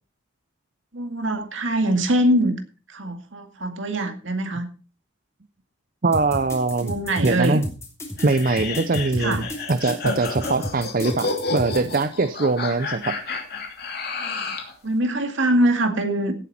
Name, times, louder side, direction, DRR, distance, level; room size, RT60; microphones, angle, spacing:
voice 1, 0.9-2.6 2.9-4.7 6.8-7.6 9.2-9.4 14.8-16.3, right 1 dB, 70° right, 6 dB, 2.1 m, -23 dB
voice 2, 6.0-6.9 7.2-7.7 8.2-13.1, right 3 dB, 45° right, 10 dB, 0.6 m, -22 dB
sound 1, 6.1-12.0, left 1 dB, 15° left, 3.1 m, -32 dB
sound 2, 8.2-14.7, left 4 dB, 50° left, 2.8 m, -30 dB
16.5 x 8.2 x 4.3 m, 0.36 s
head